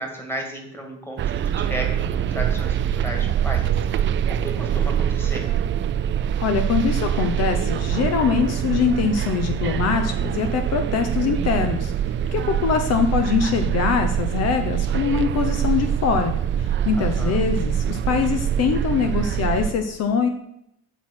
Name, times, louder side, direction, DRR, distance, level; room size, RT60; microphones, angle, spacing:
voice 1, 0.0-3.7 3.9-5.5 17.0-17.5, equal, 10° left, 2 dB, 2.0 m, -34 dB
sound 1, 1.2-19.7, right 9 dB, 40° right, 0.4 m, -24 dB
voice 2, 6.4-11.9 12.3-20.3, left 6 dB, 60° left, 7 dB, 0.8 m, -23 dB
8.4 x 5.8 x 6.0 m, 0.78 s
cardioid pair, 150°, 29 cm